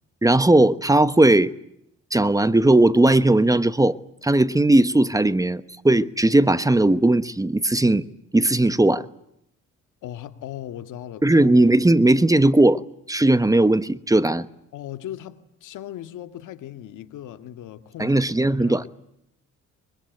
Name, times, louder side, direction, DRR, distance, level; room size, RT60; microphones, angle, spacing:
voice 1, 0.2-1.5 2.1-4.0 4.2-8.0 8.3-9.1 11.2-12.8 13.1-14.5 18.0-18.8, right 2 dB, 10° right, 1.1 m, -18 dB
voice 2, 10.0-11.5 14.7-18.2 18.6-18.9, left 12 dB, 85° left, 2.0 m, -38 dB
24.0 x 23.5 x 9.3 m
cardioid pair, 90°, 30 cm